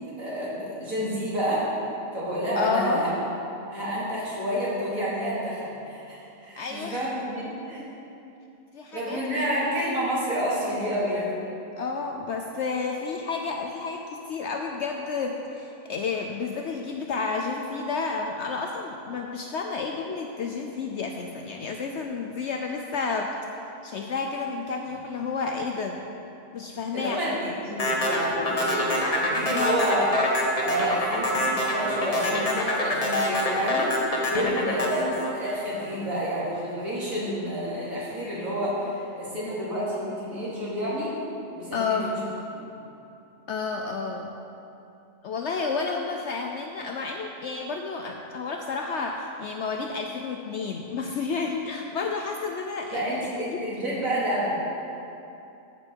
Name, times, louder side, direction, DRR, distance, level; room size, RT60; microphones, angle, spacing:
voice 1, 0.2-1.8 2.1-3.1 3.7-7.9 8.9-11.3 26.9-30.1 30.6-41.1 41.5-42.2 42.5-42.7 52.9-54.5, equal, 65° right, -8 dB, 2.9 m, -29 dB
voice 2, 2.6-3.0 6.6-7.0 8.7-9.2 9.5-9.7 11.8-14.0 14.3-23.3 23.8-26.0 26.5-27.4 27.8-27.9 29.4-29.8 41.7-42.2 43.5-44.3 45.2-53.1 53.5-53.6, left 4 dB, 65° left, 2 dB, 0.7 m, -30 dB
sound 1, 27.8-36.2, left 1 dB, 30° left, 1.1 m, -26 dB
13.5 x 5.5 x 4.5 m, 2.8 s
omnidirectional pair, 1.6 m